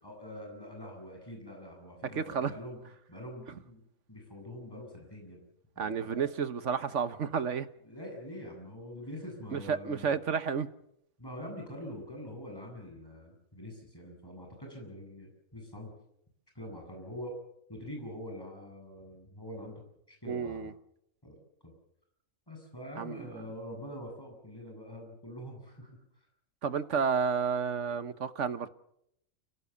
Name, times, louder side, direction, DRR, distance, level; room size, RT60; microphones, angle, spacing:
voice 1, 0.0-2.8 3.1-5.4 5.8-6.3 7.8-10.2 11.2-15.9 16.5-17.4 17.7-19.8 20.1-20.7 21.2-21.4 21.6-21.7 22.5-25.9 26.2-26.3, equal, 15° left, 8.1 m, -44 dB
voice 2, 2.1-2.5 5.8-7.7 9.5-10.7 20.3-20.7 23.0-23.4 26.6-28.7, right 6 dB, 65° right, 1.4 m, -31 dB
29.5 x 17.5 x 7.1 m
omnidirectional pair, 1.4 m